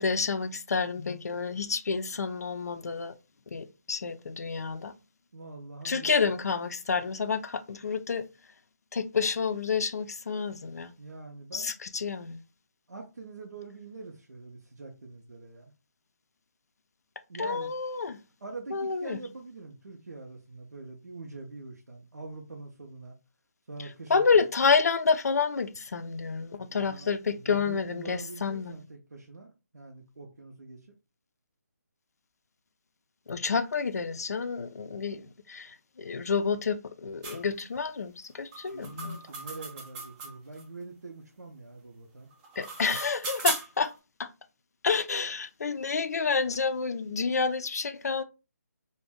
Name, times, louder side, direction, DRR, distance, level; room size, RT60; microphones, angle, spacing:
voice 1, 0.0-3.2 3.5-4.9 5.8-8.2 8.9-10.9 11.5-12.4 17.4-18.2 18.7-19.2 24.1-28.8 33.3-39.2 42.6-43.9 44.2-44.3 44.8-48.2, left 5 dB, 70° left, 0.4 m, -29 dB
voice 2, 5.3-6.3 11.0-11.7 12.9-15.7 17.3-17.7 18.4-23.2 23.7-24.4 26.7-30.9 38.7-42.3, right 3 dB, 80° right, 0.6 m, -44 dB
sound 1, 37.2-37.4 38.5-40.6 42.3-43.9, right 4 dB, 10° right, 0.4 m, -36 dB
2.4 x 2.2 x 3.4 m
figure-of-eight pair, 160°, 9 cm